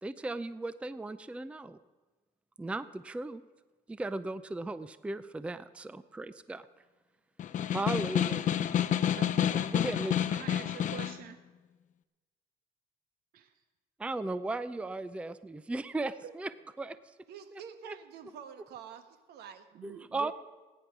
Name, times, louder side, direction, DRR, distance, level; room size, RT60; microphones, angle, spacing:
voice 1, 0.0-1.8 2.6-3.4 3.9-6.7 7.7-8.7 9.7-10.4 14.0-17.0 17.5-18.0 19.8-20.3, right 2 dB, 5° right, 14 dB, 0.4 m, -37 dB
Snare drum, 7.4-11.2, left 10 dB, 50° left, 0.7 m, -29 dB
voice 2, 8.9-9.7 10.3-11.4 13.3-13.5 16.2-16.3 19.7-20.3, right 9 dB, 60° right, 9 dB, 0.8 m, -46 dB
voice 3, 17.3-19.0 19.3-19.7, right 8 dB, 75° right, 9 dB, 1.4 m, -47 dB
17.5 x 9.9 x 6.1 m, 1.3 s
cardioid pair, 110°, 17 cm